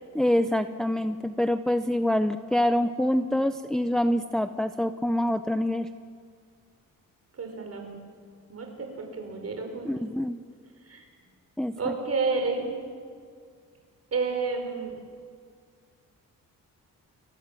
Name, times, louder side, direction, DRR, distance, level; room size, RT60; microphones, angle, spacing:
voice 1, 0.1-5.9 9.8-10.4 11.6-11.9, left 1 dB, ahead, 9 dB, 0.6 m, -26 dB
voice 2, 7.4-8.0 8.5-9.9 10.9-11.0 11.8-12.7 14.1-14.9, right 4 dB, 45° right, 3 dB, 5.5 m, -30 dB
29.5 x 22.5 x 7.6 m, 2.1 s
wide cardioid pair, 160°, 34 cm